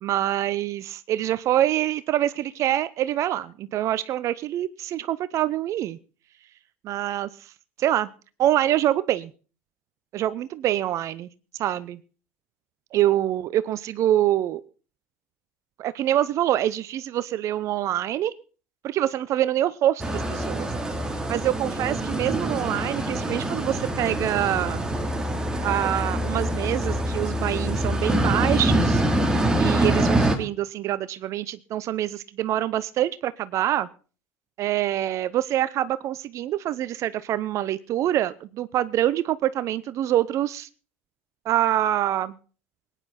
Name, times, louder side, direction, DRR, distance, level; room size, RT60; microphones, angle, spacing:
voice 1, 0.0-6.0 6.8-7.3 7.8-8.1 8.4-9.3 10.1-11.3 11.6-12.0 12.9-14.6 15.8-18.3 18.8-20.7 21.3-24.8 25.6-29.0 29.6-33.9 34.6-40.7 41.5-42.3, right 12 dB, 50° right, 17 dB, 0.7 m, -25 dB
sound 1, 20.0-30.4, right 1 dB, 10° right, 3.1 m, -25 dB
21.0 x 10.0 x 4.2 m, 0.38 s
hypercardioid pair, 70°, 7 cm